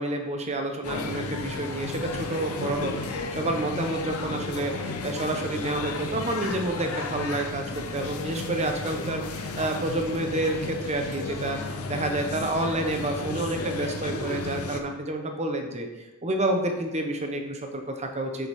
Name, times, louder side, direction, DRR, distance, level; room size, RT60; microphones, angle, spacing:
voice 1, 0.0-15.9 16.2-18.5, right 2 dB, 30° right, 4 dB, 1.0 m, -29 dB
sound 1, 0.8-14.8, left 3 dB, 85° left, 0.8 m, -33 dB
7.8 x 6.7 x 3.6 m, 1.2 s
head